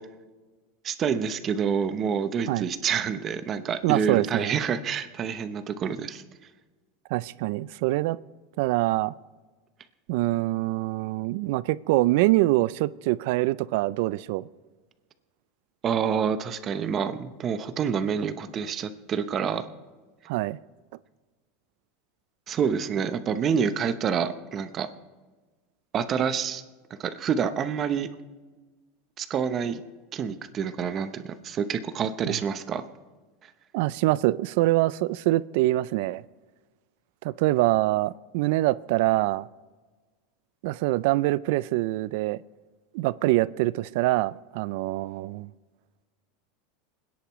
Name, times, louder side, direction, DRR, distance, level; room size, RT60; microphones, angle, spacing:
voice 1, 0.8-6.2 15.8-19.6 22.5-24.9 25.9-26.6 27.0-28.1 29.2-29.8 30.1-32.8, right 7 dB, 30° right, 11 dB, 0.8 m, -27 dB
voice 2, 3.8-4.5 7.1-8.2 8.6-9.1 10.1-14.5 20.3-20.6 32.3-32.4 33.7-36.2 37.2-39.5 40.6-42.4 42.9-45.5, right 18 dB, 65° right, 20 dB, 0.4 m, -24 dB
28.0 x 10.5 x 3.1 m, 1.3 s
supercardioid pair, 150°, 0 cm